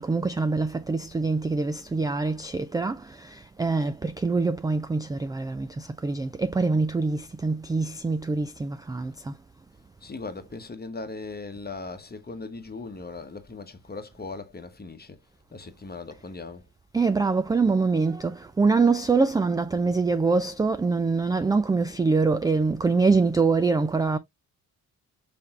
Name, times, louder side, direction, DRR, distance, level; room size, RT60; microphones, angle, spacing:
voice 1, 0.0-9.4 16.9-24.2, right 4 dB, 10° right, 0.3 m, -24 dB
voice 2, 10.0-15.2 15.5-16.6, left 3 dB, 20° left, 1.1 m, -38 dB
5.4 x 3.4 x 2.5 m
hypercardioid pair, 45°, 44 cm